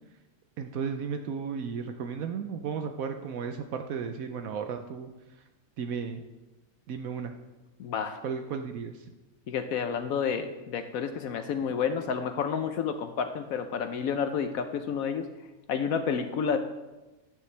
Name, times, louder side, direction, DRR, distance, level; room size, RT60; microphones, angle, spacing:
voice 1, 0.6-5.1 5.8-6.2 6.9-7.3 8.2-9.1, right 6 dB, 75° right, 6 dB, 1.1 m, -34 dB
voice 2, 7.8-8.2 9.5-15.3 15.7-16.6, left 6 dB, 80° left, 7 dB, 1.1 m, -30 dB
12.0 x 9.5 x 3.3 m, 1.1 s
omnidirectional pair, 1.5 m